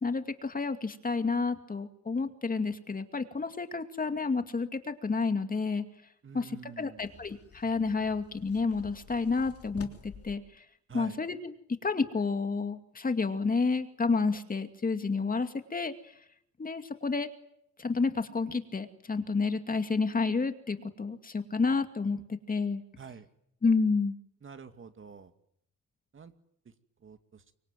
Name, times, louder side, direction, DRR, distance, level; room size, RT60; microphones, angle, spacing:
voice 1, 0.0-5.8 6.3-10.4 10.9-11.5 11.8-15.9 16.6-17.3 17.8-22.8 23.6-24.2, left 4 dB, 30° left, 8 dB, 2.4 m, -30 dB
voice 2, 6.2-7.0 10.9-11.2 23.0-23.3 24.4-25.3 26.1-26.3 27.0-27.4, right 6 dB, 40° right, 9 dB, 2.3 m, -47 dB
sound 1, 7.0-10.4, left 6 dB, 50° left, 3.2 m, -50 dB
25.0 x 23.5 x 9.3 m, 0.73 s
cardioid pair, 90°, 30 cm